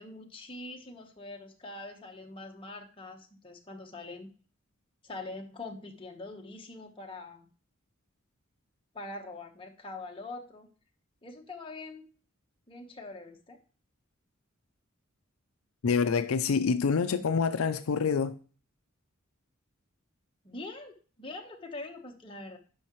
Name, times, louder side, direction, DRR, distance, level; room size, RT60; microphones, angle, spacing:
voice 1, 0.0-4.3 5.0-7.5 8.9-10.7 11.2-12.1 12.7-13.6 20.4-22.6, left 2 dB, 25° left, 1.1 m, -43 dB
voice 2, 15.8-18.3, left 5 dB, 80° left, 0.5 m, -26 dB
9.8 x 5.6 x 3.0 m
head